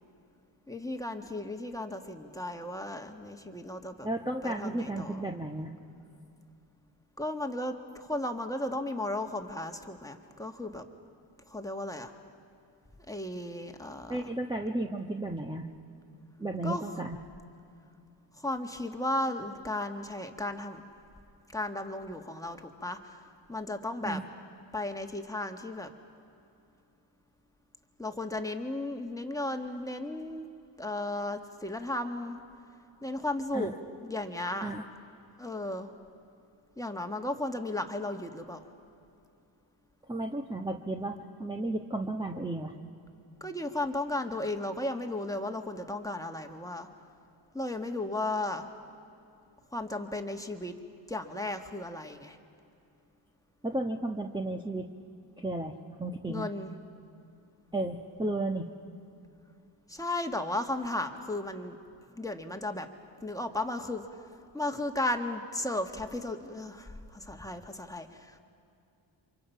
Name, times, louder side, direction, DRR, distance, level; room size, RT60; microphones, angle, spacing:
voice 1, 0.7-4.1 4.4-5.2 7.2-10.9 11.5-12.1 13.1-14.3 16.6-16.8 18.4-20.8 21.5-23.2 23.5-24.2 24.7-25.9 28.0-30.5 30.8-32.4 33.0-33.7 34.0-34.8 35.4-35.9 36.8-38.7 43.4-46.9 47.5-48.7 49.7-50.7 51.1-52.4 56.3-56.7 59.9-61.8 62.2-62.9 63.2-64.1 64.5-68.4, left 1 dB, 5° left, 4 dB, 1.8 m, -35 dB
voice 2, 4.0-5.7 14.1-15.7 16.4-17.2 24.0-24.2 33.5-33.7 34.6-34.8 40.1-42.7 53.6-54.9 55.4-55.7 56.0-56.5 57.7-58.7, right 2 dB, 10° right, 2 dB, 1.2 m, -33 dB
28.0 x 25.0 x 5.8 m, 2.6 s
cardioid pair, 65°, 48 cm